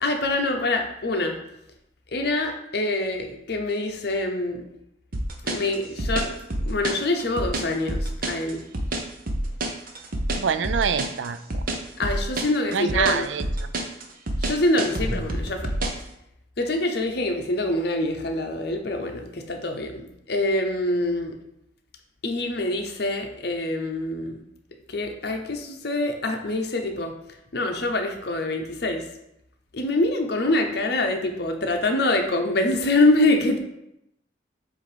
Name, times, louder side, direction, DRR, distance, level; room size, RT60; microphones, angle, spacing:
voice 1, 0.0-1.4 2.1-4.6 5.4-6.3 6.7-8.6 12.0-13.3 14.4-15.7 16.6-21.4 22.2-24.4 24.9-27.1 27.5-29.0 29.7-33.6, left 2 dB, 60° left, 4 dB, 0.8 m, -25 dB
sound 1, 5.1-16.0, right 1 dB, 50° right, 0.8 m, -27 dB
voice 2, 10.4-11.6 12.7-13.7, right 7 dB, 80° right, 12 dB, 0.4 m, -26 dB
7.5 x 2.7 x 5.0 m, 0.82 s
head